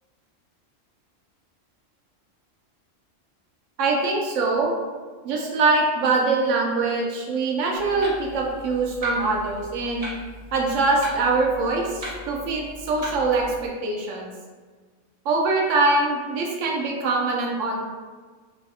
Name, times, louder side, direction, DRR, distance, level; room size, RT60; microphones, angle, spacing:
voice 1, 3.8-4.7 5.2-10.0 10.5-14.3 15.2-17.9, right 3 dB, 75° right, -1 dB, 0.9 m, -23 dB
Clock, 7.8-13.7, left 1 dB, 40° right, 0.6 m, -39 dB
3.2 x 2.2 x 2.7 m, 1.5 s
omnidirectional pair, 1.3 m